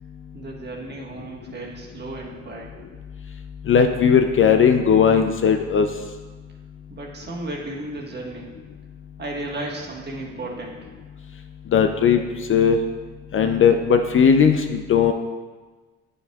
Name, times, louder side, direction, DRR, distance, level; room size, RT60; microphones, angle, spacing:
voice 1, 0.3-2.7 6.9-8.5 9.2-10.9, right 2 dB, 35° right, -2 dB, 1.4 m, -34 dB
voice 2, 3.7-5.9 11.7-12.2 12.5-12.8 13.3-15.1, left 7 dB, 45° left, 6 dB, 0.4 m, -17 dB
8.5 x 5.3 x 2.3 m, 1.3 s
cardioid pair, 90°, 30 cm